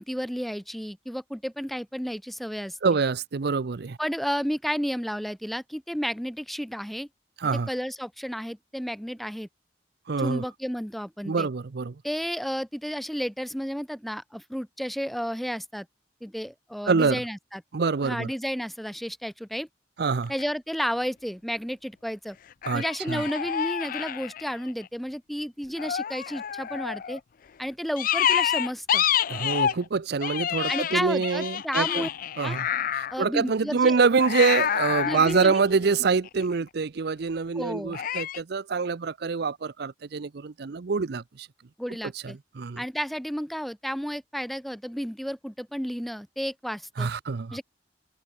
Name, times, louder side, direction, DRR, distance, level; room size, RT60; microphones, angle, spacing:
voice 1, 0.0-2.8 4.0-7.1 7.7-9.5 10.2-11.5 12.0-15.9 16.2-17.6 18.0-19.7 20.3-22.4 22.7-27.2 27.6-29.0 30.7-32.1 32.4-32.6 33.1-34.0 35.0-35.5 37.5-38.0 41.8-42.4 42.8-47.1 47.5-47.6, equal, ahead, 0.9 m, -32 dB
voice 2, 2.8-4.0 7.4-7.7 10.1-10.4 11.2-11.9 16.9-17.2 17.7-18.3 20.0-20.3 22.7-23.2 29.3-32.1 32.4-32.7 32.9-41.5 42.2-42.8 47.0-47.6, right 4 dB, 65° right, 0.6 m, -25 dB
sound 1, 20.2-20.4 22.6-24.9 25.8-27.2 28.0-29.9 30.2-33.2 34.2-36.4 37.9-38.4, left 9 dB, 50° left, 0.4 m, -28 dB
head